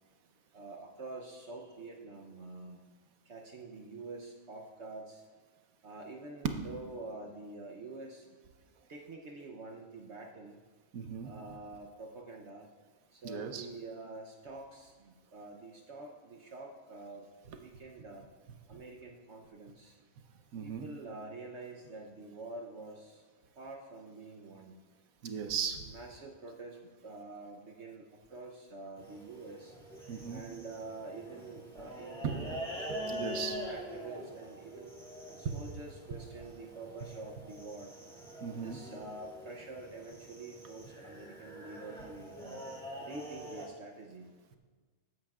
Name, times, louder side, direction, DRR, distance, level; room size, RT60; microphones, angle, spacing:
voice 1, 0.5-2.8 3.2-5.2 5.8-8.3 8.9-10.6 11.2-12.7 13.1-17.3 17.6-18.3 18.7-20.0 20.6-23.3 23.6-24.7 25.9-29.8 30.3-34.9 35.4-37.9 38.6-42.6 43.0-44.3, right 3 dB, 60° right, 1 dB, 1.1 m, -47 dB
voice 2, 10.9-11.3 13.2-13.7 20.5-20.8 25.2-25.8 30.1-30.4 32.2-32.3 33.1-33.6 38.4-38.8, right 7 dB, 80° right, 6 dB, 1.3 m, -37 dB
sound 1, 29.0-43.6, equal, 5° left, 2.0 m, -45 dB
14.0 x 10.0 x 2.4 m, 1.4 s
omnidirectional pair, 1.4 m